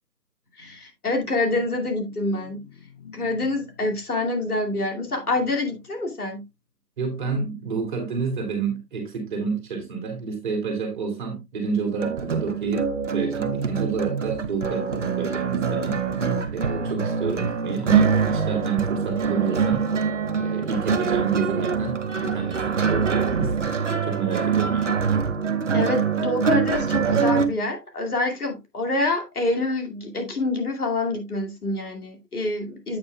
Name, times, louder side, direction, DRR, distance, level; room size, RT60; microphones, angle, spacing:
voice 1, 0.6-6.4 25.7-33.0, left 2 dB, 65° left, 2.5 m, -27 dB
voice 2, 7.0-16.0 16.5-19.9 20.4-23.5 24.0-25.0, right 5 dB, 30° right, 2.8 m, -29 dB
sound 1, 12.0-27.5, right 6 dB, 50° right, 1.0 m, -24 dB
8.5 x 8.5 x 2.3 m
figure-of-eight pair, 155°, 49 cm